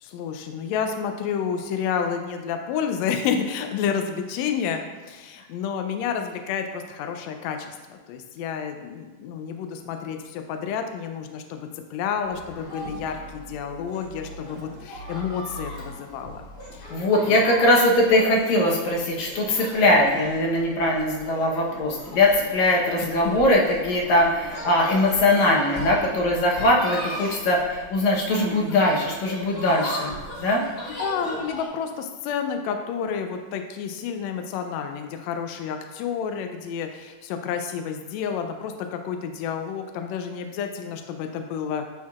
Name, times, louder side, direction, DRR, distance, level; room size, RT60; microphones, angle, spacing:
voice 1, 0.0-16.4 16.7-17.4 23.0-23.3 31.0-41.8, left 7 dB, 90° left, 5 dB, 1.5 m, -30 dB
sound 1, 12.2-31.7, equal, 30° left, 1.6 m, -38 dB
voice 2, 16.9-30.6, left 1 dB, 70° left, -2 dB, 2.2 m, -21 dB
10.5 x 4.5 x 2.4 m, 1.3 s
omnidirectional pair, 3.6 m